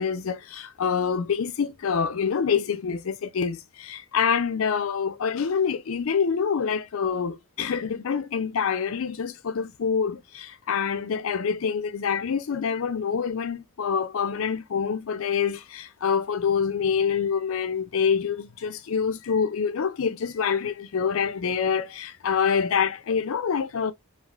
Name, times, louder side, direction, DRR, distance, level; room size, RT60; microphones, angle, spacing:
voice 1, 0.0-23.9, left 6 dB, 65° left, 0.4 m, -26 dB
3.4 x 2.5 x 2.3 m
head